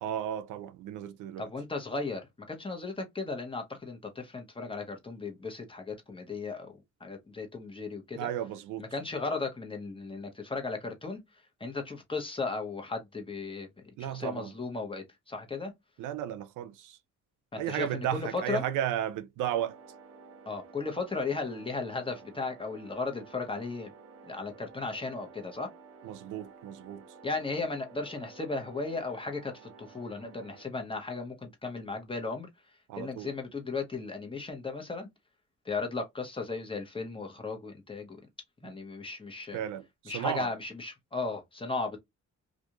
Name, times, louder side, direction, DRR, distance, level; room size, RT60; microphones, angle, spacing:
voice 1, 0.0-1.5 8.2-8.8 14.0-14.5 16.0-17.0 17.6-19.8 26.0-27.0 32.9-33.3 39.5-40.5, right 11 dB, 85° right, 0.5 m, -34 dB
voice 2, 1.4-8.3 8.8-11.2 11.6-13.7 14.0-15.7 17.5-18.6 20.5-23.9 24.3-25.7 27.2-32.5 32.9-35.1 35.6-38.2 38.6-39.6 40.1-42.0, left 3 dB, 15° left, 1.0 m, -36 dB
sound 1, 19.5-30.6, right 5 dB, 50° right, 0.8 m, -52 dB
2.5 x 2.3 x 2.9 m
cardioid pair, 90°, 30 cm